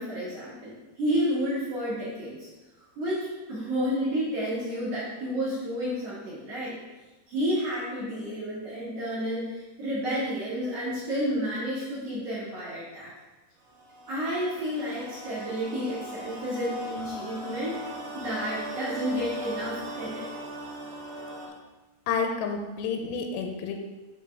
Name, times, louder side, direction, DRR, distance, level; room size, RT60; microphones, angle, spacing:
voice 1, 0.0-2.5 3.0-6.8 7.3-13.1 14.1-17.8 18.1-20.3, equal, 50° right, -9 dB, 2.4 m, -31 dB
sound 1, 13.6-21.5, equal, 70° right, 3.4 m, -39 dB
voice 2, 22.1-23.7, left 5 dB, 90° left, 3 dB, 2.9 m, -29 dB
10.0 x 4.1 x 3.5 m, 1.2 s
omnidirectional pair, 4.9 m